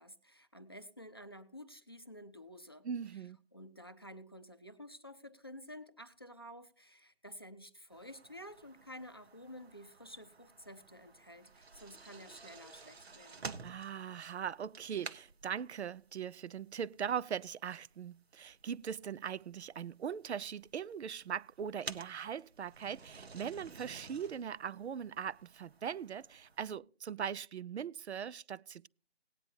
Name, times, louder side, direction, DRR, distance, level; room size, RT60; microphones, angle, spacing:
voice 1, 0.0-2.9 3.1-3.2 3.5-13.6, equal, 25° left, 0.5 m, -51 dB
voice 2, 2.8-3.4 13.6-28.9, right 8 dB, 90° right, 0.5 m, -40 dB
sound 1, 7.9-26.8, right 4 dB, 75° right, 1.2 m, -53 dB
18.0 x 9.8 x 2.7 m
hypercardioid pair, 170°, 32 cm